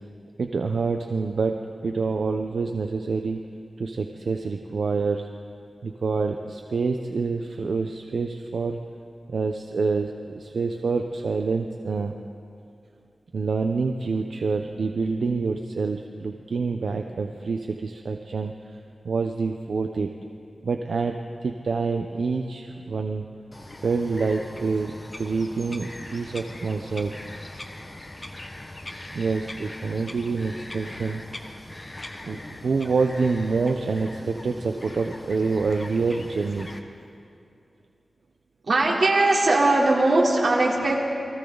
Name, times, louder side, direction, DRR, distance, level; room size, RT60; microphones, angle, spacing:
voice 1, 0.4-1.6 1.8-3.4 3.8-5.3 5.8-8.8 9.3-12.1 13.3-18.5 19.0-20.1 20.6-21.2 21.4-23.3 23.8-27.2 27.8-27.9 29.1-31.2 32.2-36.7, right 4 dB, 80° right, 4 dB, 0.9 m, -27 dB
Bird vocalization bird call bird song, 23.5-36.8, left 1 dB, 30° left, 1.5 m, -40 dB
voice 2, 38.6-41.0, right 2 dB, 60° right, -3 dB, 3.7 m, -20 dB
29.0 x 23.0 x 4.0 m, 2.6 s
wide cardioid pair, 120°, 0 cm